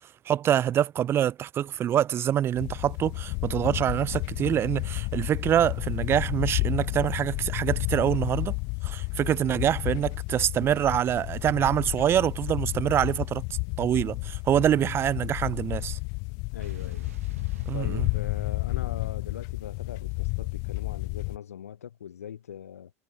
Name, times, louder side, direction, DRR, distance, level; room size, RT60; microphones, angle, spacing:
voice 1, 0.3-8.6 8.8-13.4 13.8-16.0 17.7-18.1, right 10 dB, 30° right, 0.8 m, -25 dB
sound 1, 2.6-21.4, left 34 dB, 45° left, 0.4 m, -31 dB
voice 2, 16.5-17.1 17.7-22.9, left 9 dB, 70° left, 0.9 m, -40 dB
Explosion, 16.6-20.9, right 11 dB, 65° right, 1.5 m, -52 dB
figure-of-eight pair, 85°, 8 cm